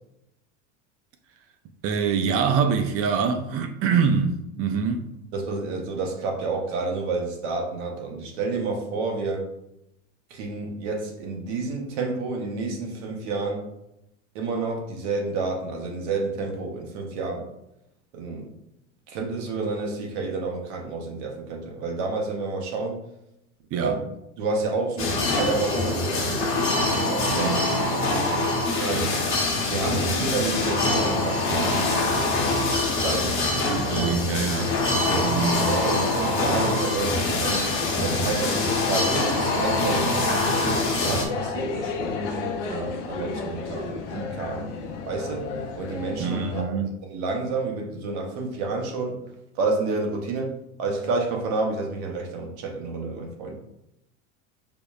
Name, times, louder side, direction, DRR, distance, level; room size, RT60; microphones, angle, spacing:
voice 1, 1.8-5.1 23.7-24.0 27.3-27.7 33.4-34.8 35.2-35.7 46.2-46.9, right 6 dB, 40° right, 0.4 m, -25 dB
voice 2, 5.3-9.5 10.3-13.7 14.3-17.5 18.1-18.5 19.1-23.0 23.7-24.0 24.4-27.6 27.9-28.1 28.8-29.1 29.6-31.7 33.0-33.5 35.1-37.7 38.0-40.5 41.1-44.7 45.1-49.2 49.5-50.5 50.8-53.6, right 3 dB, 70° right, 0.9 m, -30 dB
sound 1, 25.0-41.3, left 2 dB, 35° left, 1.0 m, -24 dB
sound 2, 29.5-46.6, left 4 dB, 75° left, 0.6 m, -34 dB
5.1 x 2.0 x 2.3 m
hypercardioid pair, 95°, 36 cm